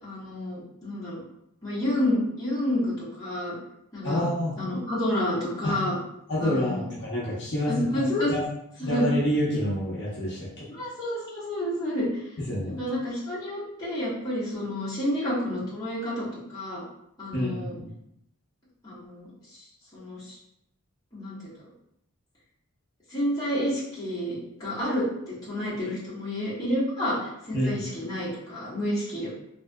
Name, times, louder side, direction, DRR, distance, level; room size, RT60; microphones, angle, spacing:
voice 1, 0.0-1.2 1.6-3.6 3.9-4.2 4.6-6.0 6.4-6.9 7.6-8.3 8.8-9.1 10.7-12.1 12.7-16.8 17.2-17.8 18.8-19.6 19.9-20.4 21.1-21.4 23.1-29.3, left 1 dB, 15° left, -10 dB, 1.2 m, -29 dB
voice 2, 4.0-4.6 5.6-5.8 6.3-7.7 8.3-8.4 8.8-10.7 12.5-12.8 17.3-17.9 27.5-27.7, left 1 dB, 50° left, -8 dB, 0.8 m, -28 dB
3.2 x 2.6 x 2.2 m, 0.78 s
head